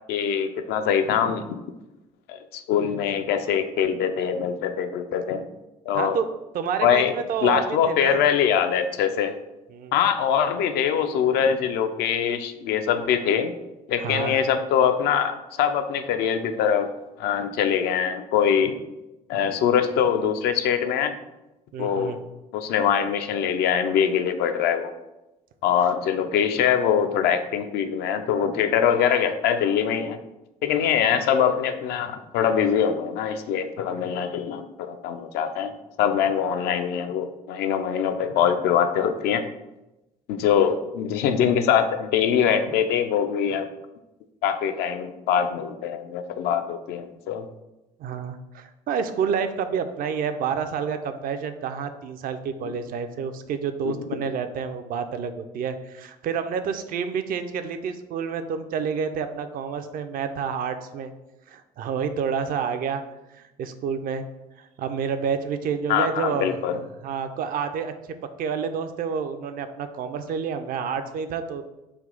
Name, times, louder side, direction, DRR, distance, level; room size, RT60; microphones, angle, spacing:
voice 1, 0.1-1.6 2.3-5.5 5.9-6.2 6.8-7.1 7.4-9.3 9.9-13.5 13.9-16.9 17.2-18.8 19.3-21.2 21.8-22.2 22.5-24.9 25.6-30.2 30.6-35.7 36.0-39.4 40.3-43.7 44.4-47.5 53.8-53.9 65.9-66.8, left 8 dB, 60° left, 8 dB, 0.4 m, -23 dB
voice 2, 5.9-6.3 6.5-8.2 9.7-9.9 14.0-14.4 21.7-22.2 48.0-61.1 61.5-63.0 63.3-64.2 64.6-66.6 67.0-67.9 68.4-71.7, right 6 dB, 45° right, 9 dB, 0.4 m, -29 dB
3.4 x 2.3 x 3.7 m, 0.97 s
hypercardioid pair, 55°, 20 cm